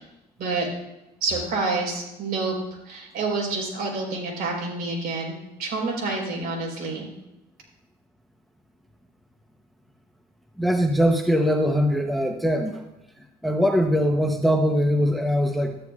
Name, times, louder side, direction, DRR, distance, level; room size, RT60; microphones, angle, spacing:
voice 1, 1.2-7.1, right 3 dB, 65° right, -1 dB, 3.9 m, -28 dB
voice 2, 10.6-12.8 13.4-15.8, equal, ahead, 4 dB, 0.7 m, -21 dB
13.0 x 10.5 x 2.4 m, 0.91 s
cardioid pair, 110°, 17 cm